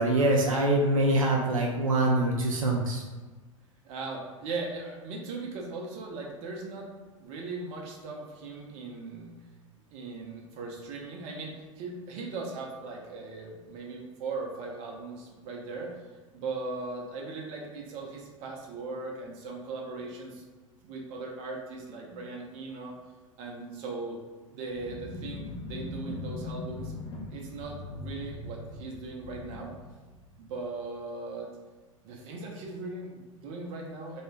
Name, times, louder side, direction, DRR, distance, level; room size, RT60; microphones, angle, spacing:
voice 1, 0.0-3.0, right 1 dB, 75° right, -1 dB, 0.4 m, -24 dB
voice 2, 3.8-6.9 7.2-9.3 9.9-16.0 16.3-20.4 20.8-22.9 23.4-24.2 24.5-26.9 27.3-29.7 30.4-31.5 32.0-34.2, right 3 dB, 40° right, -1 dB, 0.6 m, -38 dB
sound 1, 24.7-30.7, left 2 dB, 30° left, 0.5 m, -40 dB
2.3 x 2.3 x 3.1 m, 1.3 s
figure-of-eight pair, 85°, 17 cm